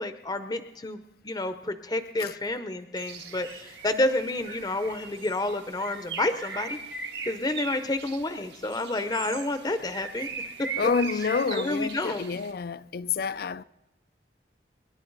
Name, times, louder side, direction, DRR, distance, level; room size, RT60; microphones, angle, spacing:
voice 1, 0.0-6.8 7.3-10.3 10.6-10.7 11.5-12.2, left 2 dB, 25° left, 0.7 m, -29 dB
Bird, 3.0-12.5, right 5 dB, 75° right, 1.9 m, -39 dB
voice 2, 10.8-13.6, left 5 dB, 55° left, 0.4 m, -28 dB
28.5 x 11.0 x 4.0 m
head